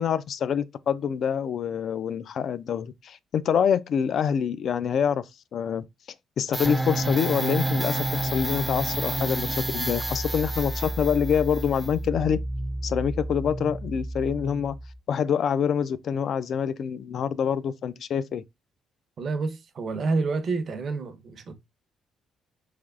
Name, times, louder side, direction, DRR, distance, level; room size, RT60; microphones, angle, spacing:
voice 1, 0.0-5.8 6.4-12.4 12.8-14.8 15.1-18.4, left 8 dB, 65° left, 0.3 m, -26 dB
sound 1, 6.5-15.0, right 1 dB, 10° right, 0.4 m, -30 dB
voice 2, 19.2-21.5, right 3 dB, 55° right, 0.6 m, -28 dB
3.3 x 3.2 x 2.4 m
cardioid pair, 75°, 0 cm